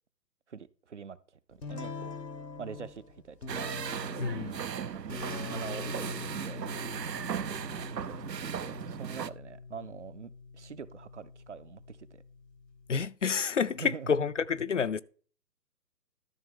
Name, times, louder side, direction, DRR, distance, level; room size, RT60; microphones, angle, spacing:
voice 1, 0.5-2.2 2.6-4.1 4.9-6.6 7.2-12.2 13.8-14.1, right 6 dB, 45° right, 0.6 m, -45 dB
sound 1, 1.6-13.1, left 4 dB, 90° left, 1.6 m, -44 dB
sound 2, 3.5-9.3, right 8 dB, 85° right, 0.7 m, -37 dB
voice 2, 4.2-4.6 12.9-15.0, left 6 dB, 50° left, 0.5 m, -29 dB
13.0 x 6.3 x 3.7 m
figure-of-eight pair, 145°, 49 cm